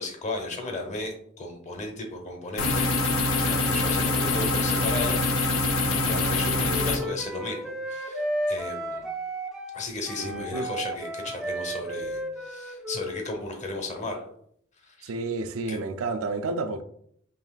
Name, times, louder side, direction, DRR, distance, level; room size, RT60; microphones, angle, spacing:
voice 1, 0.0-9.1 9.7-14.2 14.8-15.1 15.7-15.8, left 2 dB, 35° left, 0.9 m, -35 dB
sound 1, 2.6-7.0, left 2 dB, 85° left, 0.8 m, -24 dB
Wind instrument woodwind instrument, 6.2-13.7, equal, 5° right, 0.4 m, -34 dB
voice 2, 10.2-10.7 15.0-16.8, right 3 dB, 90° right, 0.4 m, -30 dB
5.3 x 3.2 x 2.4 m
head